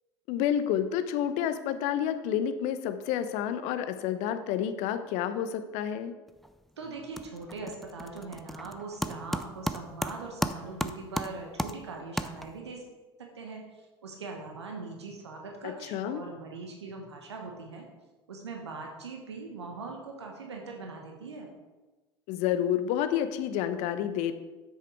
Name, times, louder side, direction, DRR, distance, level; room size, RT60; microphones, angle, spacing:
voice 1, 0.3-6.1 15.6-16.2 22.3-24.3, left 10 dB, 55° left, 10 dB, 0.8 m, -29 dB
sound 1, 6.3-6.7 6.9-12.8, equal, ahead, 0.5 m, -35 dB
voice 2, 6.8-12.8 13.3-17.9 18.3-21.5, right 3 dB, 80° right, 1 dB, 1.2 m, -41 dB
7.8 x 6.4 x 4.7 m, 1.2 s
figure-of-eight pair, 70°, 14 cm